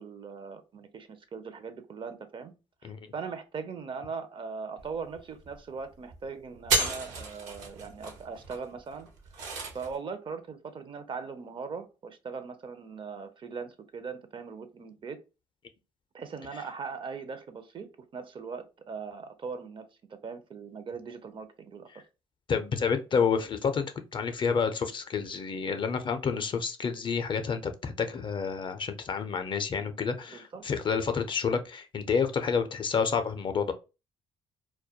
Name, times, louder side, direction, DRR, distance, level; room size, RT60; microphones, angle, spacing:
voice 1, 0.0-2.5 2.8-9.1 9.7-15.2 16.1-17.9 18.1-21.9 30.3-30.7, right 5 dB, 40° right, 0.4 m, -40 dB
sound 1, 4.8-4.9 5.1-5.6 5.9-6.2 6.5-10.0, right 3 dB, 80° right, 0.7 m, -32 dB
voice 2, 22.5-33.7, left 6 dB, 40° left, 0.4 m, -29 dB
2.2 x 2.1 x 2.7 m
supercardioid pair, 65°, 13 cm